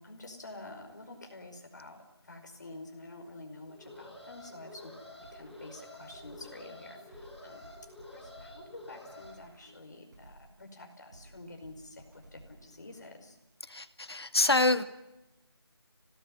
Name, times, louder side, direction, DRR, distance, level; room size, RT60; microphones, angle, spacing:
voice 1, 0.0-5.0 5.3-13.4, left 2 dB, 45° left, 4 dB, 5.2 m, -49 dB
Alarm, 3.6-9.3, left 2 dB, 5° left, 5.8 m, -49 dB
sound 1, 5.2-6.7 7.1-10.7 11.1-13.2, right 1 dB, 40° right, 5.9 m, -56 dB
voice 2, 13.6-14.8, left 2 dB, 70° left, 10 dB, 2.2 m, -26 dB
25.5 x 18.5 x 9.2 m, 0.93 s
figure-of-eight pair, 170°, 14 cm